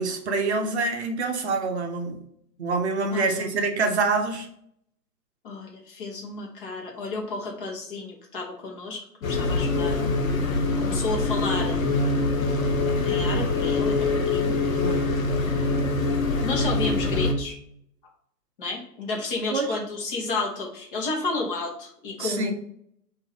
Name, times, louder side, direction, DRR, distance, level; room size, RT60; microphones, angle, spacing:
voice 1, 0.0-2.2 2.6-4.5 14.8-15.1 19.5-19.7 22.2-22.5, right 3 dB, 45° right, 4 dB, 0.7 m, -26 dB
voice 2, 3.1-3.5 5.4-10.1 10.8-11.8 13.0-15.1 16.4-17.5 18.6-22.5, left 3 dB, 35° left, 0 dB, 1.0 m, -32 dB
sound 1, 9.2-17.3, left 3 dB, 55° left, 0.8 m, -24 dB
3.9 x 2.7 x 4.6 m, 0.70 s
figure-of-eight pair, 120°, 48 cm